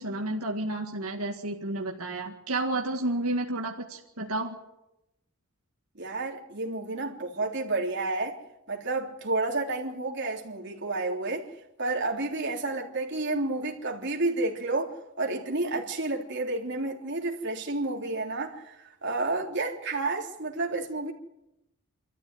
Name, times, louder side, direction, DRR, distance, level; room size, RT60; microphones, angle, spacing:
voice 1, 0.0-4.5, right 2 dB, 80° right, 2.0 m, -31 dB
voice 2, 6.0-8.3 8.7-11.5 11.8-21.1, right 2 dB, 55° right, 3.4 m, -30 dB
26.0 x 14.0 x 9.5 m
head